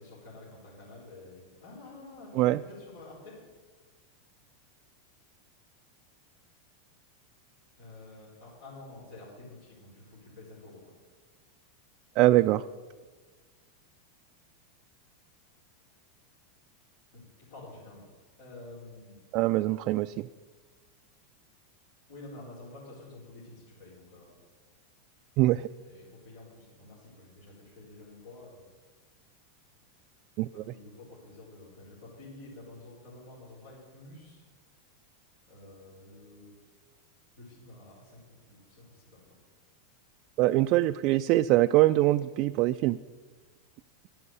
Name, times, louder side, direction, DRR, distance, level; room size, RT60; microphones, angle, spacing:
voice 1, 0.0-3.4 7.8-10.8 17.1-18.0 18.4-19.2 22.1-24.4 25.8-28.7 30.5-34.4 35.5-36.5 37.4-39.2, left 2 dB, 85° left, -7 dB, 4.7 m, -49 dB
voice 2, 12.2-12.6 19.3-20.3 25.4-25.7 30.4-30.6 40.4-43.0, right 16 dB, 50° right, 9 dB, 0.3 m, -23 dB
11.0 x 7.8 x 8.1 m, 1.4 s
hypercardioid pair, 120°, 0 cm